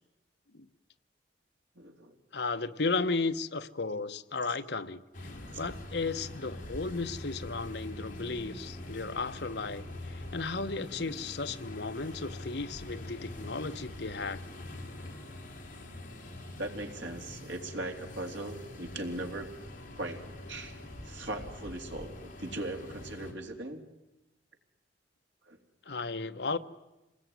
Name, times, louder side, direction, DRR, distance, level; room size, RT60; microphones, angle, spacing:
voice 1, 1.7-2.1 5.5-5.6 16.6-19.5 19.9-20.2 20.5-22.1 22.4-23.9 25.5-25.6, right 1 dB, 90° right, 4 dB, 3.3 m, -39 dB
voice 2, 2.3-5.0 5.5-14.4 25.9-26.6, left 3 dB, 65° left, 10 dB, 1.0 m, -34 dB
sound 1, 5.1-23.3, left 1 dB, 45° left, 3.9 m, -44 dB
27.0 x 20.0 x 9.5 m, 0.99 s
head